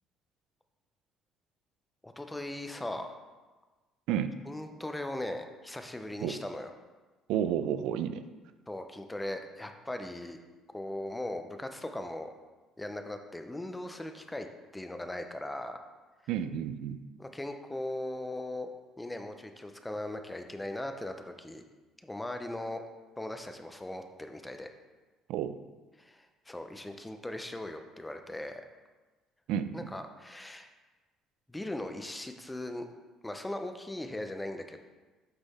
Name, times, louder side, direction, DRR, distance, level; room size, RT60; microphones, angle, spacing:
voice 1, 2.0-3.2 4.5-6.7 8.7-10.4 10.7-12.3 12.8-14.5 14.7-15.8 17.2-18.7 19.0-21.6 22.0-22.8 23.2-24.7 26.0-28.6 29.7-30.7 31.5-32.9 33.2-34.8, left 1 dB, 5° left, 6 dB, 0.4 m, -39 dB
voice 2, 7.3-8.2 16.3-17.0 25.3-25.6 29.5-29.8, right 9 dB, 75° right, 11 dB, 0.3 m, -31 dB
8.0 x 3.8 x 4.1 m, 1.3 s
cardioid pair, 170°, 0 cm